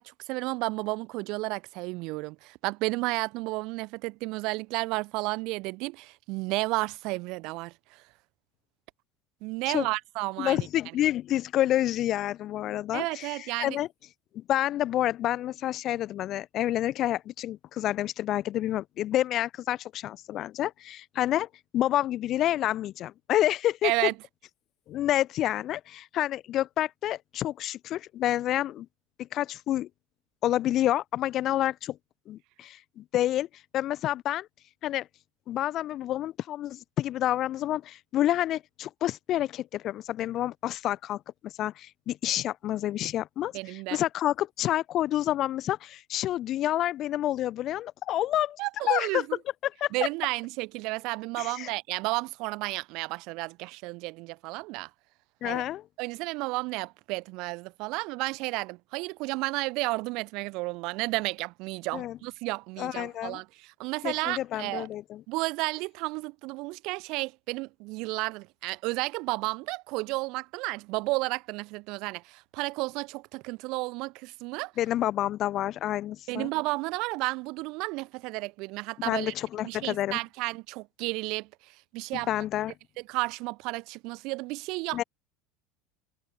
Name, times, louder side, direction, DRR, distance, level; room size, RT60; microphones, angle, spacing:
voice 1, 0.0-7.7 9.4-10.7 12.9-13.8 23.8-24.1 43.5-44.0 48.6-49.4 49.9-54.9 55.4-55.6 56.0-64.9 65.3-74.7 76.3-79.3 79.6-81.5 81.9-82.3 83.1-85.0, right 24 dB, 50° right, 0.9 m, -32 dB
voice 2, 10.4-13.9 14.3-21.5 21.7-24.1 24.9-28.9 29.2-29.9 30.4-32.0 32.3-33.5 33.7-34.5 34.8-35.1 35.5-49.2 49.6-49.9 51.4-51.7 55.4-55.8 61.9-62.2 62.8-63.4 64.0-65.2 74.8-76.5 79.0-80.2 82.3-82.7 84.9-85.0, left 13 dB, 40° left, 0.7 m, -29 dB
figure-of-eight pair, 70°, 0 cm